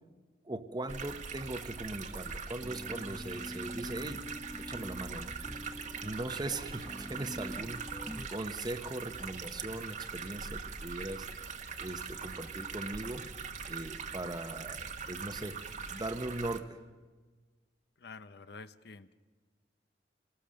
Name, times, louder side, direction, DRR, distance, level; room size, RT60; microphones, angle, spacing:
voice 1, 0.4-4.2 4.6-5.3 6.0-7.8 8.3-11.3 11.8-13.2 13.6-15.6 15.9-16.8, right 2 dB, 25° right, 10 dB, 1.1 m, -39 dB
sound 1, 0.9-16.6, right 5 dB, 45° right, 1.3 m, -42 dB
sound 2, 2.6-8.3, left 1 dB, 5° left, 0.8 m, -45 dB
voice 2, 18.0-19.1, left 4 dB, 65° left, 13 dB, 0.8 m, -49 dB
26.5 x 19.0 x 6.5 m, 1.4 s
head